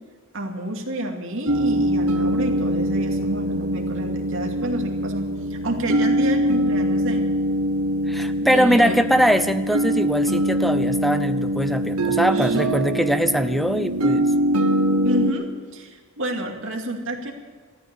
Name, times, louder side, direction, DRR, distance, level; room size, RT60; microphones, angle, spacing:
voice 1, 0.3-7.3 8.4-9.0 12.2-12.6 15.0-15.5 15.7-17.3, right 1 dB, 60° right, 2 dB, 2.5 m, -29 dB
sound 1, 1.5-15.3, right 1 dB, 90° right, 1.2 m, -23 dB
voice 2, 8.1-14.3, equal, ahead, 10 dB, 0.7 m, -21 dB
15.0 x 14.0 x 6.8 m, 1.5 s
head